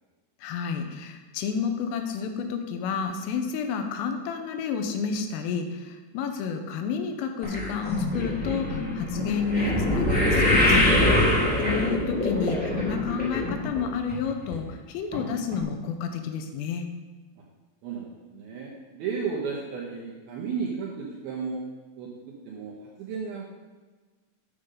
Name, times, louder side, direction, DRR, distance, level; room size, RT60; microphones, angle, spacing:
voice 1, 0.4-10.9 11.6-16.8, left 6 dB, 85° left, 6 dB, 3.4 m, -30 dB
sound 1, 7.4-13.8 14.1-14.6 15.1-15.2 15.5-15.6, left 1 dB, 5° left, 1.0 m, -24 dB
voice 2, 17.8-21.6 22.0-22.1 22.5-22.7 23.0-23.5, right 5 dB, 75° right, -4 dB, 2.3 m, -33 dB
8.8 x 5.2 x 6.8 m, 1.4 s
omnidirectional pair, 5.8 m